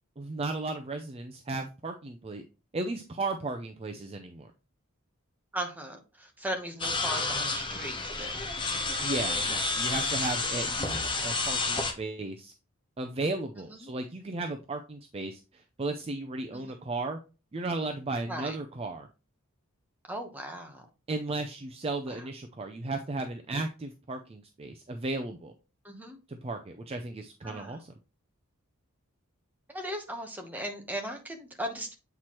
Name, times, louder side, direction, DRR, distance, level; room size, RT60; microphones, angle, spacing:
voice 1, 0.2-2.4 2.7-4.5 9.0-12.5 13.0-17.2 17.5-19.1 21.1-25.5 26.3-27.9, right 2 dB, 25° right, 5 dB, 0.4 m, -35 dB
voice 2, 5.5-8.4 10.6-10.7 13.7-13.9 16.5-16.8 18.3-18.6 20.1-20.9 22.1-22.3 25.8-26.2 27.4-27.8 29.7-32.0, equal, 10° right, 3 dB, 0.9 m, -38 dB
sound 1, 6.8-11.9, left 3 dB, 20° left, 0.9 m, -30 dB
7.9 x 4.3 x 3.0 m, 0.31 s
head